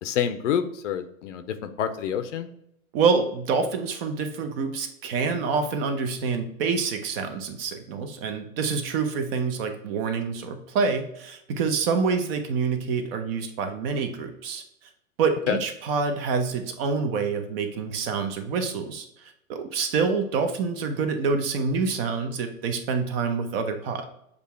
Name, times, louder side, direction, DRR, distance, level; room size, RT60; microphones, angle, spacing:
voice 1, 0.0-2.5 15.5-15.6, left 8 dB, 55° left, 9 dB, 0.6 m, -27 dB
voice 2, 2.9-14.6 15.2-24.1, right 5 dB, 40° right, 7 dB, 0.8 m, -27 dB
6.7 x 2.4 x 3.2 m, 0.76 s
hypercardioid pair, 115°, 43 cm